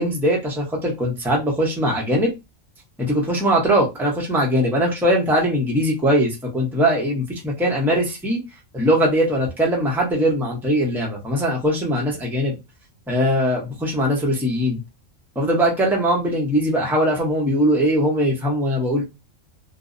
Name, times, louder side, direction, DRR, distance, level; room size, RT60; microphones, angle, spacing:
voice 1, 0.0-2.3 3.0-8.4 8.7-12.5 13.1-14.8 15.4-19.0, equal, 5° right, 0.4 m, -21 dB
2.5 x 2.0 x 2.5 m
omnidirectional pair, 1.3 m